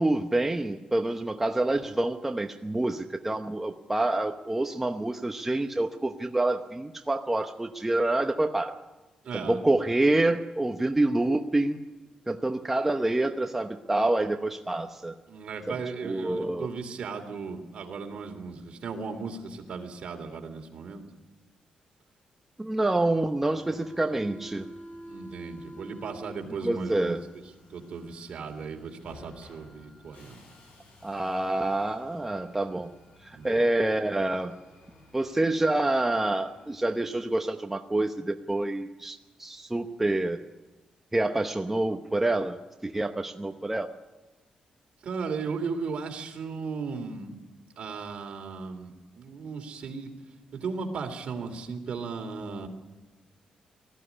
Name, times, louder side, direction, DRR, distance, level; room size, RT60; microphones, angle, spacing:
voice 1, 0.0-8.8 9.3-11.8 12.3-15.1 15.7-15.8 16.0-16.7 22.6-24.7 26.6-27.2 31.0-32.9 33.2-34.6 35.1-40.4 41.1-43.9, right 2 dB, 10° right, 5 dB, 0.8 m, -27 dB
voice 2, 9.2-9.6 15.3-21.0 25.1-27.2 27.7-30.4 33.3-33.7 45.0-47.3 47.8-50.1 50.5-52.7, right 5 dB, 60° right, 4 dB, 3.0 m, -36 dB
Subway metro underground, 23.4-37.8, equal, 75° left, 7.4 m, -50 dB
19.5 x 14.5 x 10.0 m, 1.1 s
cardioid pair, 130°, 2 cm